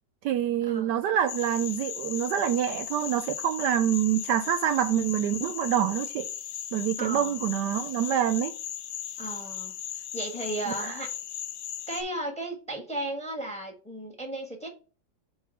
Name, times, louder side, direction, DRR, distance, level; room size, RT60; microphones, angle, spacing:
voice 1, 0.2-6.3 6.7-8.5 10.7-10.9, right 10 dB, 75° right, 1.1 m, -26 dB
sound 1, 1.3-12.0, left 10 dB, 80° left, 0.7 m, -37 dB
voice 2, 7.0-7.5 9.2-11.1 11.9-14.7, right 1 dB, 5° left, 1.2 m, -35 dB
4.9 x 4.0 x 5.5 m
omnidirectional pair, 2.0 m